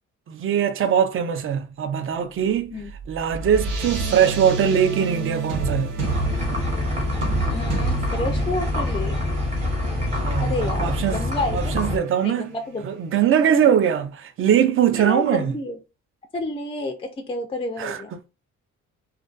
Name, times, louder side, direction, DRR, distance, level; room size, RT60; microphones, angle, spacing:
voice 1, 0.3-2.7 3.1-5.9 10.2-11.2 11.5-12.5 12.8-15.5 17.8-18.3, right 9 dB, 45° right, 0.4 m, -21 dB
sound 1, 2.4-13.2, right 3 dB, 80° right, 0.9 m, -31 dB
coffee machine making coffee, 6.0-12.0, left 2 dB, 20° right, 0.9 m, -25 dB
voice 2, 7.4-9.1 10.4-11.8 12.2-12.9 13.6-13.7 14.9-15.8 16.3-18.1, left 2 dB, 20° left, 0.3 m, -30 dB
2.4 x 2.2 x 2.3 m
cardioid pair, 90°, 30 cm